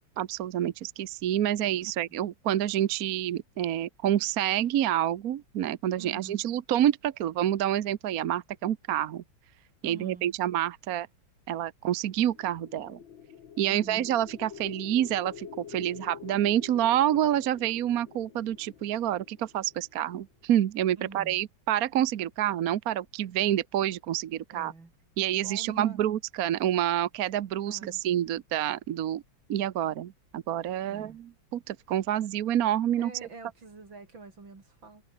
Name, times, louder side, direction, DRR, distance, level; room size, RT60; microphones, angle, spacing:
voice 1, 0.2-9.2 9.8-11.1 11.5-13.0 13.6-24.7 25.2-29.2 29.5-33.1, right 11 dB, 60° right, 1.1 m, -28 dB
voice 2, 1.7-2.2 6.0-6.4 9.8-10.4 13.7-14.1 21.0-21.4 24.5-24.9 25.4-26.0 27.7-28.0 30.8-31.2 33.0-35.0, right 3 dB, 80° right, 5.5 m, -46 dB
sound 1, 12.2-20.3, left 8 dB, 80° left, 2.3 m, -47 dB
omnidirectional pair, 2.1 m